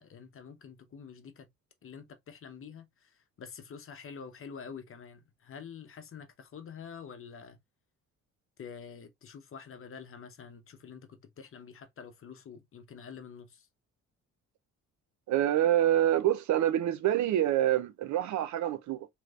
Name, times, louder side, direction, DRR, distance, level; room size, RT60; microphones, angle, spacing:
voice 1, 0.0-1.5 1.8-7.6 8.6-13.7, left 6 dB, 45° left, 0.9 m, -47 dB
voice 2, 15.3-19.1, right 12 dB, 70° right, 0.6 m, -26 dB
3.1 x 3.1 x 2.4 m
cardioid pair, 90°, 30 cm